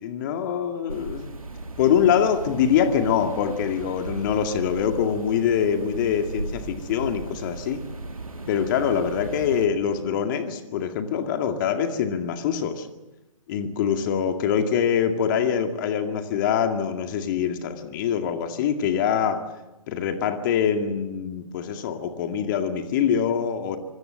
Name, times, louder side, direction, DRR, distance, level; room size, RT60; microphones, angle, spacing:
voice 1, 0.0-1.4 1.8-7.8 8.5-12.9 13.5-19.4 19.9-23.8, left 8 dB, 35° left, 6 dB, 2.2 m, -24 dB
sound 1, 0.9-9.7, right 2 dB, 80° right, 2.0 m, -36 dB
26.5 x 23.5 x 7.7 m, 1.0 s
figure-of-eight pair, 125°, 18 cm